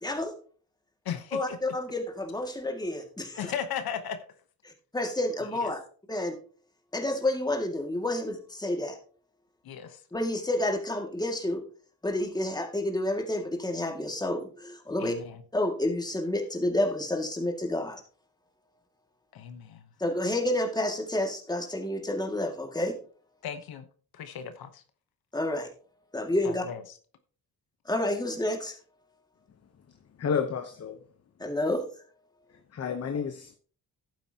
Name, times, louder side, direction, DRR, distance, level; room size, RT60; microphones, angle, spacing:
voice 1, 0.0-0.3 1.3-3.4 4.6-5.8 6.1-6.4 6.9-9.0 10.1-11.6 12.0-15.1 15.5-18.0 20.0-22.9 25.3-25.7 26.1-26.6 27.9-28.8 31.4-31.8, left 1 dB, 10° left, 2.1 m, -29 dB
voice 2, 1.0-1.6 3.4-4.2 5.6-5.7 9.6-10.0 15.0-15.4 19.3-19.9 23.4-23.9 24.1-24.8 26.4-27.0, left 8 dB, 75° left, 1.1 m, -36 dB
voice 3, 30.2-31.0 32.5-33.6, left 6 dB, 40° left, 0.9 m, -31 dB
11.5 x 9.1 x 2.9 m
cardioid pair, 105°, 36 cm